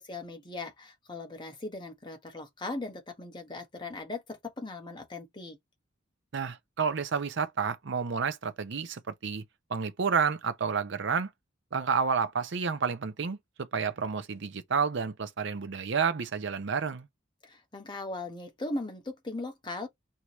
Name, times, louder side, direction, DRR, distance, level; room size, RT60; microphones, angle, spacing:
voice 1, 0.0-5.6 17.4-19.9, left 2 dB, 25° left, 1.0 m, -39 dB
voice 2, 6.3-9.4 9.7-11.3 11.7-17.1, right 6 dB, 60° right, 0.6 m, -30 dB
4.6 x 2.8 x 3.0 m
head